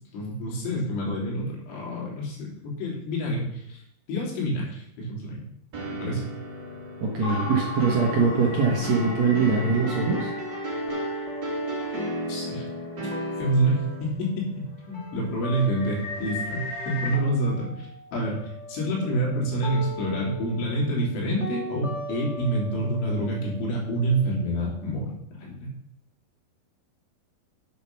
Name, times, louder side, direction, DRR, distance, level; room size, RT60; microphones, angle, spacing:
voice 1, 0.1-3.8 4.1-5.4 6.0-6.2 12.3-12.6 13.4-18.4 18.7-25.1 25.4-25.7, right 1 dB, 90° left, -3 dB, 5.6 m, -27 dB
sound 1, 5.7-14.0, right 1 dB, 35° right, 1.9 m, -33 dB
voice 2, 7.0-10.3, right 4 dB, 75° right, -1 dB, 1.5 m, -23 dB
sound 2, 7.2-13.0 13.5-13.6 14.1-14.4 14.8-17.2, left 2 dB, 65° left, 3.9 m, -37 dB
sound 3, 10.9-16.9 17.1-24.9, right 1 dB, 30° left, 1.3 m, -40 dB
9.1 x 7.4 x 6.0 m, 0.74 s
omnidirectional pair, 5.3 m